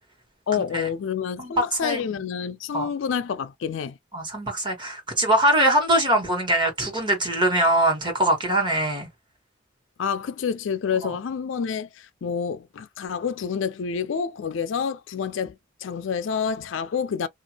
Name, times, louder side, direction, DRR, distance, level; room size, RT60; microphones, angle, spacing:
voice 1, 0.5-4.0 10.0-17.3, left 6 dB, 70° left, 0.4 m, -28 dB
voice 2, 4.1-9.1, right 1 dB, 25° right, 1.3 m, -22 dB
2.6 x 2.4 x 2.8 m
head